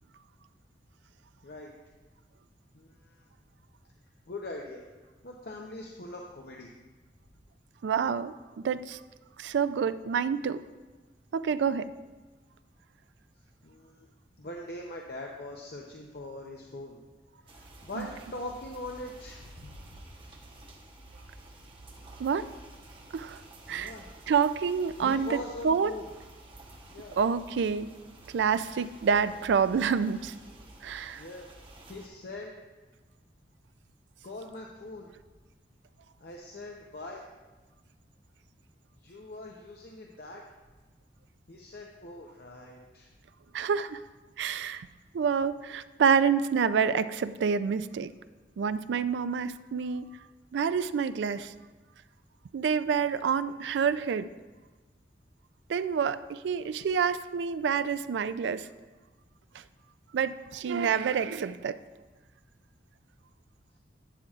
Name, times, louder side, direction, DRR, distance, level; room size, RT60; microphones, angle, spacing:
voice 1, 2.7-3.3 4.3-4.8 5.2-6.7 13.6-14.1 14.4-17.0 17.5-20.0 23.7-24.1 25.0-26.1 26.9-27.2 31.2-31.5 31.9-32.5 34.2-35.1 36.2-37.3 39.0-40.4 41.5-43.1, left 1 dB, 60° left, 0 dB, 0.7 m, -42 dB
voice 2, 7.8-9.0 9.4-10.6 11.3-11.9 18.0-18.1 22.2-22.5 23.1-23.4 23.7-23.9 24.3-25.3 25.6-25.9 27.2-27.9 28.3-30.3 30.8-31.2 43.5-44.0 44.4-44.9 45.1-48.1 48.6-50.1 50.5-51.5 52.5-54.3 55.7-58.7 60.1-61.8, right 6 dB, 85° right, 13 dB, 0.3 m, -28 dB
sound 1, 17.5-32.1, right 1 dB, 30° right, 1.0 m, -51 dB
11.5 x 9.0 x 2.4 m, 1.2 s
head